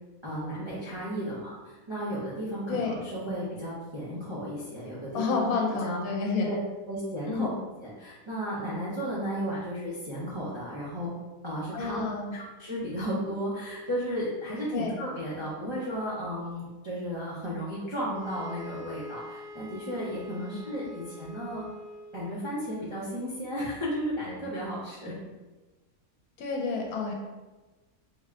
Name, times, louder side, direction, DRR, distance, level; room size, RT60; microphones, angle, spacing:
voice 1, 0.2-5.5 5.8-6.0 6.4-6.5 6.9-7.5 7.8-11.1 11.4-12.0 12.3-21.7 22.1-25.2, equal, 35° right, -9 dB, 0.5 m, -34 dB
voice 2, 2.7-3.0 5.1-6.5 7.2-7.4 11.7-12.3 14.7-14.9 20.5-20.9 26.4-27.1, left 4 dB, 85° left, 0 dB, 1.1 m, -30 dB
sound 1, 18.1-22.5, left 1 dB, 65° right, 1.3 m, -45 dB
3.4 x 2.2 x 3.6 m, 1.2 s
omnidirectional pair, 1.5 m